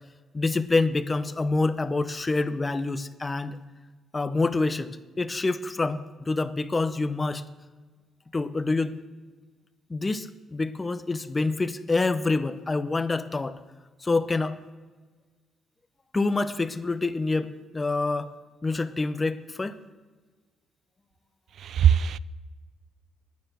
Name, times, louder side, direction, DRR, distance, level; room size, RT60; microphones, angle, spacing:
voice 1, 0.3-3.6 4.1-7.4 8.3-8.9 9.9-13.6 14.0-14.6 16.1-18.3 18.6-19.8, left 3 dB, 25° left, 0.7 m, -27 dB
voice 2, 21.6-22.2, right 9 dB, 65° right, 0.4 m, -20 dB
9.9 x 9.4 x 7.5 m
cardioid pair, 90°, 0 cm